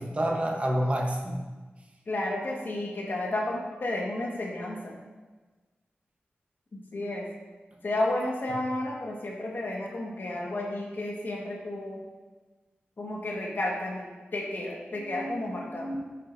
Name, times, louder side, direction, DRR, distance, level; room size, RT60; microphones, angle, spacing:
voice 1, 0.0-1.4 14.9-16.0, equal, 35° right, 1 dB, 1.1 m, -30 dB
voice 2, 2.1-5.0 6.7-7.3 7.8-12.0 13.0-14.1 14.3-15.9, left 1 dB, 55° left, -2 dB, 1.6 m, -32 dB
10.0 x 7.8 x 2.7 m, 1.3 s
wide cardioid pair, 110°, 4 cm